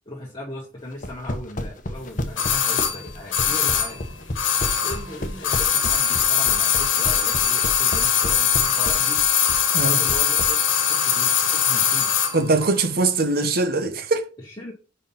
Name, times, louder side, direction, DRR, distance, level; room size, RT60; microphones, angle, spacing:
voice 1, 0.0-4.1 4.8-9.2 9.8-12.1 14.4-14.7, left 1 dB, 25° left, 1.5 m, -38 dB
sound 1, 0.9-10.5, left 1 dB, 45° left, 0.9 m, -31 dB
sound 2, 2.4-5.1 5.4-12.4 12.6-12.7, left 8 dB, 80° left, 1.3 m, -21 dB
voice 2, 9.7-10.1 12.3-14.2, right 3 dB, 50° right, 0.9 m, -22 dB
5.5 x 5.0 x 5.6 m
head